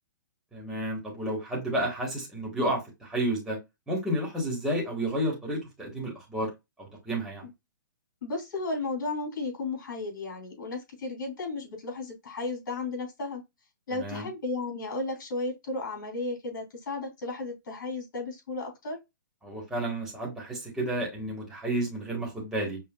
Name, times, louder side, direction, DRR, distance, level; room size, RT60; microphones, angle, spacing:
voice 1, 0.5-3.6 3.9-6.5 6.8-7.5 13.9-14.3 19.4-22.8, right 1 dB, 5° right, 1.3 m, -31 dB
voice 2, 8.2-13.4 13.9-19.0, left 3 dB, 65° left, 2.8 m, -34 dB
5.5 x 2.4 x 2.3 m
hypercardioid pair, 155°, 11 cm